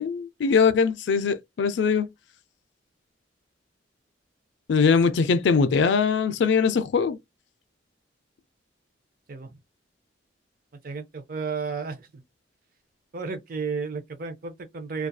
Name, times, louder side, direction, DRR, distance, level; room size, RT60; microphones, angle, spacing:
voice 1, 0.0-2.1 4.7-7.2, left 5 dB, 70° left, 0.4 m, -21 dB
voice 2, 10.8-12.2 13.1-15.1, right 5 dB, 50° right, 0.5 m, -33 dB
2.6 x 2.3 x 2.2 m
head